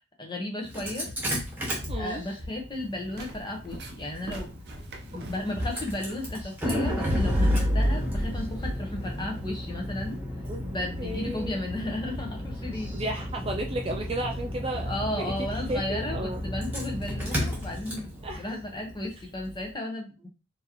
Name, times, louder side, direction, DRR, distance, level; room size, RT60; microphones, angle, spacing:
voice 1, 0.2-1.1 2.0-4.5 5.1-10.2 10.6-12.9 14.9-20.3, left 1 dB, 20° left, 0 dB, 1.1 m, -34 dB
Engine starting, 0.6-19.6, equal, 10° right, 1.4 m, -32 dB
voice 2, 1.9-2.2 5.1-5.3 10.5-11.6 12.9-15.3 15.7-16.4 18.2-18.4, right 1 dB, 30° right, 2 dB, 0.4 m, -34 dB
sound 1, 2.7-10.2, right 1 dB, 50° right, 0.7 m, -42 dB
4.7 x 2.9 x 3.0 m, 0.30 s
head